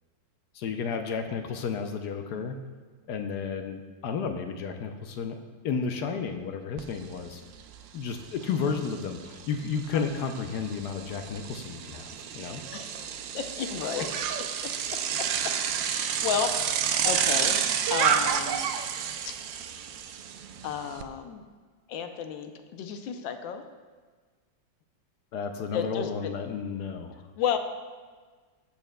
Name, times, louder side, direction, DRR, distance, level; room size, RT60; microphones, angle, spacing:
voice 1, 0.5-2.6 3.1-5.4 5.6-7.4 7.9-12.6 14.6-14.7 25.3-27.2, left 5 dB, 70° left, 6 dB, 1.1 m, -32 dB
Bicycle, 6.8-6.9 7.2-21.0, right 8 dB, 80° right, 1.3 m, -30 dB
voice 2, 12.7-14.1 14.6-16.6 17.0-17.6 17.9-18.7 19.3-19.4 20.6-21.4 21.9-23.6 25.7-26.3 27.4-27.6, left 7 dB, 85° left, 7 dB, 1.4 m, -33 dB
15.0 x 7.1 x 2.2 m, 1.5 s
omnidirectional pair, 2.0 m